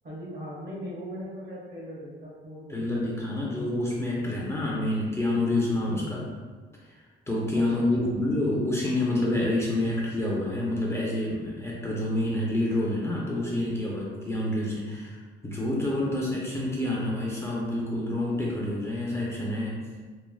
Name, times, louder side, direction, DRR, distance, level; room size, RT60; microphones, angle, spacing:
voice 1, 0.0-3.4 4.7-5.0 5.9-6.2 7.5-8.3, equal, 55° right, -5 dB, 1.0 m, -40 dB
voice 2, 2.7-6.1 7.3-19.9, left 1 dB, 15° left, -4 dB, 0.5 m, -28 dB
3.2 x 2.1 x 2.2 m, 1.4 s
cardioid pair, 90°, 20 cm